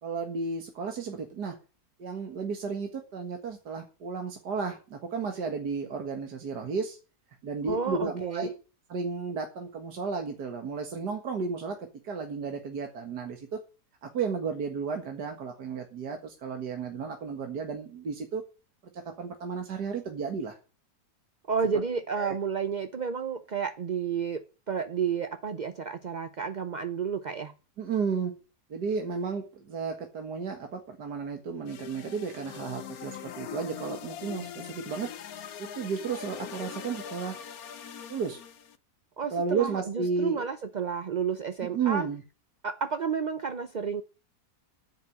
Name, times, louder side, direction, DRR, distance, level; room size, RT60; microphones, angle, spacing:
voice 1, 0.0-1.6 2.0-7.0 7.4-8.5 8.9-13.6 14.0-18.4 18.9-20.6 22.2-22.4 27.8-28.3 28.7-35.1 35.6-37.4 38.1-38.4 39.3-40.5 41.6-42.2, right 5 dB, 80° right, 2.3 m, -33 dB
voice 2, 7.7-8.5 21.5-27.5 39.2-42.1 42.6-44.0, right 6 dB, 50° right, 0.5 m, -31 dB
sound 1, 31.6-38.8, left 9 dB, 65° left, 1.3 m, -42 dB
10.5 x 8.5 x 8.6 m
omnidirectional pair, 1.7 m